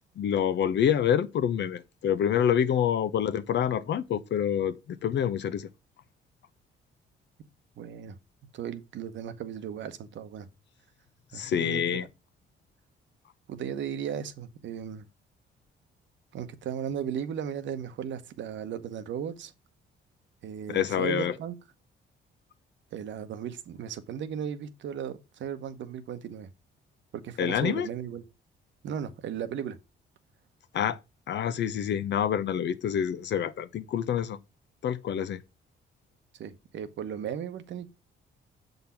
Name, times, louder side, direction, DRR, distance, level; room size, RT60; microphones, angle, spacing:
voice 1, 0.2-5.7 11.3-12.1 20.7-21.3 27.4-27.9 30.7-31.0 31.3-34.4 34.8-35.4, left 9 dB, 65° left, 0.8 m, -27 dB
voice 2, 7.8-8.2 8.5-10.5 11.3-12.1 13.5-15.1 16.3-19.5 20.4-21.5 22.9-26.5 27.1-28.2 28.8-29.8 36.4-37.9, right 8 dB, 70° right, 1.0 m, -36 dB
7.1 x 4.0 x 5.7 m
cardioid pair, 90°, 20 cm